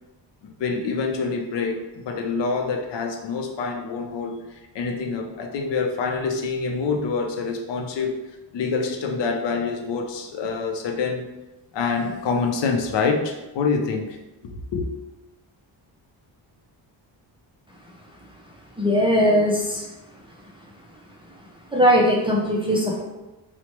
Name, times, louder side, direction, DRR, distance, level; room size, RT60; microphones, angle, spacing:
voice 1, 0.6-4.4 4.7-8.2 8.5-11.2 11.7-14.2 14.4-14.9, left 4 dB, 70° left, 3 dB, 0.5 m, -26 dB
voice 2, 18.8-19.8 21.7-23.0, equal, 15° right, -4 dB, 0.3 m, -19 dB
3.0 x 2.1 x 2.9 m, 1.0 s
cardioid pair, 110°, 45 cm